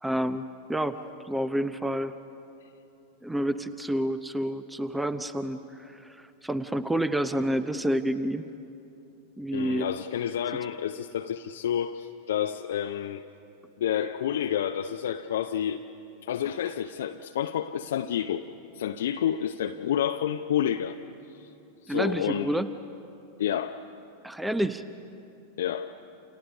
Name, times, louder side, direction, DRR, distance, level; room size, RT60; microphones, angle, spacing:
voice 1, 0.0-2.2 3.2-8.5 9.4-9.9 21.9-22.7 24.2-24.8, right 1 dB, 5° right, 12 dB, 0.7 m, -29 dB
voice 2, 9.5-13.2 13.8-15.8 16.2-18.4 18.7-21.0 21.4-21.5 21.8-22.5 23.4-23.8 25.6-25.9, left 9 dB, 60° left, 6 dB, 0.6 m, -29 dB
29.5 x 28.5 x 5.3 m, 2.8 s
figure-of-eight pair, 90°, 0 cm